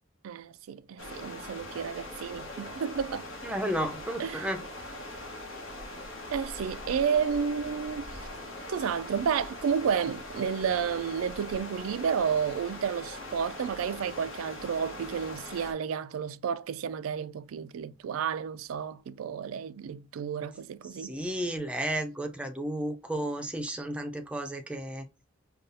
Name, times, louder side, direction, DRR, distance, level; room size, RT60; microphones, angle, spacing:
voice 1, 0.2-3.3 4.2-4.5 6.3-8.2 8.7-21.1, right 7 dB, 80° right, 0.3 m, -31 dB
sound 1, 1.0-15.7, left 1 dB, 80° left, 1.2 m, -41 dB
voice 2, 3.4-4.6 21.0-25.0, right 1 dB, 5° right, 0.5 m, -33 dB
5.3 x 2.3 x 2.6 m
head